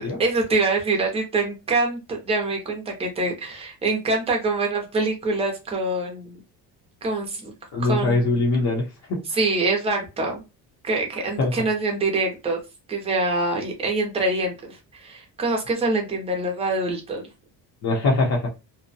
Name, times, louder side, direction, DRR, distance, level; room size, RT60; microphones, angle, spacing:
voice 1, 0.0-6.4 7.0-7.5 7.8-8.4 9.3-10.4 10.8-12.6 12.9-17.2, right 2 dB, 15° right, 0.5 m, -25 dB
voice 2, 7.7-9.2 11.4-11.5 17.8-18.5, left 2 dB, 45° left, 0.7 m, -22 dB
2.6 x 2.1 x 2.6 m
cardioid pair, 180°, 39 cm